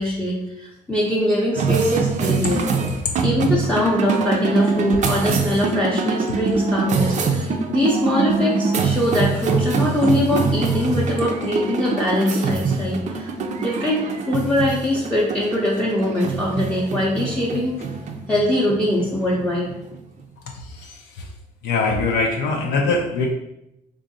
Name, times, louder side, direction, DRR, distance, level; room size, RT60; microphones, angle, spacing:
voice 1, 0.0-2.6 3.2-17.8 18.3-19.7, left 1 dB, 5° left, -6 dB, 0.6 m, -22 dB
sound 1, 1.6-20.2, right 4 dB, 45° right, 0.4 m, -24 dB
voice 2, 20.5-21.3 21.6-23.3, left 3 dB, 80° left, 1 dB, 0.5 m, -23 dB
3.6 x 2.6 x 2.7 m, 0.84 s
cardioid pair, 110°, 17 cm